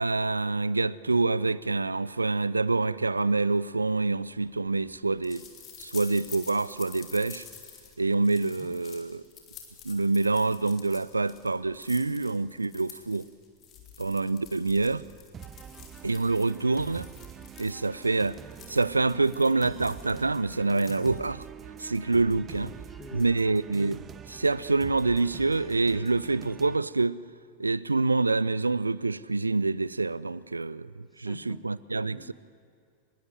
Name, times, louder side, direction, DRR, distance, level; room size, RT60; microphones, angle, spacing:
voice 1, 0.0-5.4 5.8-7.4 8.0-9.2 9.8-13.3 14.0-15.0 16.0-17.1 17.6-18.4 18.7-21.4 21.8-22.7 23.1-27.2 27.6-32.3, right 3 dB, 80° right, 0.5 m, -26 dB
sound 1, 4.0-21.5, left 7 dB, 30° left, 4.0 m, -50 dB
voice 2, 8.5-8.8 22.7-23.7 31.0-31.6 32.1-32.3, left 3 dB, 15° left, 1.7 m, -49 dB
sound 2, 15.3-26.8, right 8 dB, 25° right, 0.7 m, -45 dB
25.0 x 22.0 x 7.6 m
figure-of-eight pair, 90°, 0 cm